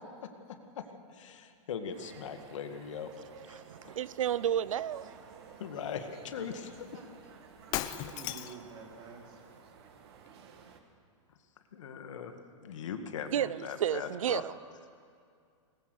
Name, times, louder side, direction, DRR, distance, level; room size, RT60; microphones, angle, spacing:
voice 1, 0.5-3.1 3.5-4.0 5.6-7.1 11.3-11.4 11.7-14.4, left 7 dB, 70° left, 6 dB, 2.1 m, -41 dB
sound 1, 1.9-10.8, right 6 dB, 50° right, 2.1 m, -53 dB
voice 2, 3.5-5.1 13.3-14.5, right 10 dB, 85° right, 18 dB, 0.6 m, -32 dB
Shatter, 7.7-8.7, left 15 dB, 25° left, 0.5 m, -35 dB
voice 3, 7.7-10.6, right 5 dB, 25° right, -1 dB, 3.8 m, -51 dB
21.5 x 20.5 x 6.5 m, 2.3 s
hypercardioid pair, 160°, 16 cm